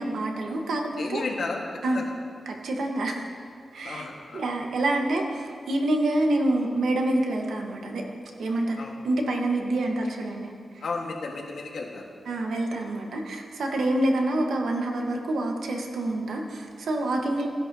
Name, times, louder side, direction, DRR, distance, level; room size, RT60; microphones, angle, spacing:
voice 1, 0.0-1.2 1.8-2.0 2.5-3.2 3.7-4.1 4.3-8.0 8.4-10.8 12.3-17.5, right 1 dB, 85° right, 2 dB, 1.2 m, -27 dB
voice 2, 1.0-2.1 3.8-4.4 8.8-9.0 10.8-12.1 13.7-13.8 17.1-17.2, left 3 dB, 65° left, 0 dB, 1.5 m, -34 dB
15.5 x 10.5 x 2.8 m, 2.2 s
wide cardioid pair, 135°, 0 cm